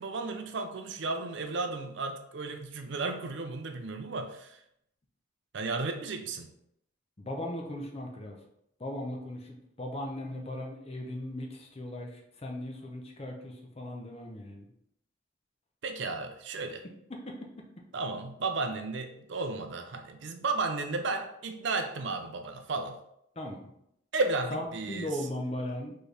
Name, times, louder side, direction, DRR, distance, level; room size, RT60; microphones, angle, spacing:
voice 1, 0.0-4.6 5.5-6.5 15.8-16.8 17.9-23.0 24.1-25.1, right 3 dB, 60° right, 6 dB, 0.5 m, -33 dB
voice 2, 7.2-8.4 8.8-14.7 17.1-17.3 23.4-23.7 24.5-26.0, left 1 dB, 30° left, 1 dB, 0.7 m, -38 dB
4.4 x 3.2 x 3.3 m, 0.75 s
head